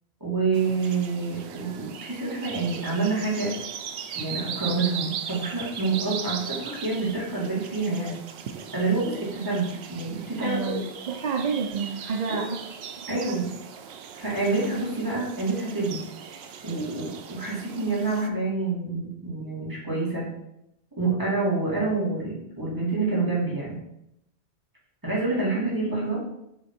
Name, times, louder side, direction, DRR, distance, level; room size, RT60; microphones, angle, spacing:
voice 1, 0.2-3.5 4.2-8.1 8.7-9.6 9.9-10.8 12.3-12.4 13.1-13.5 14.1-16.0 16.6-20.3 20.9-23.8 25.0-26.2, right 3 dB, 20° right, -7 dB, 2.4 m, -27 dB
sound 1, 0.5-18.3, right 8 dB, 80° right, 0.8 m, -39 dB
voice 2, 10.4-12.6 13.0-13.1 15.0-15.2, right 5 dB, 50° right, 1 dB, 0.6 m, -30 dB
7.1 x 3.3 x 4.4 m, 0.82 s
omnidirectional pair, 1.1 m